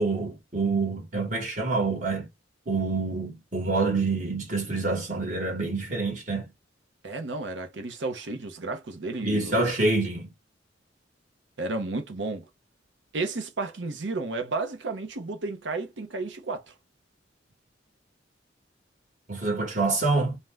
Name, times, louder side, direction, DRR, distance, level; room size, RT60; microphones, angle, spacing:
voice 1, 0.0-2.3 2.7-6.5 9.2-10.3 19.3-20.4, right 3 dB, 45° right, 1.3 m, -27 dB
voice 2, 7.0-9.6 11.6-12.4 13.1-16.7, right 3 dB, 70° right, 0.7 m, -32 dB
2.6 x 2.1 x 3.3 m
head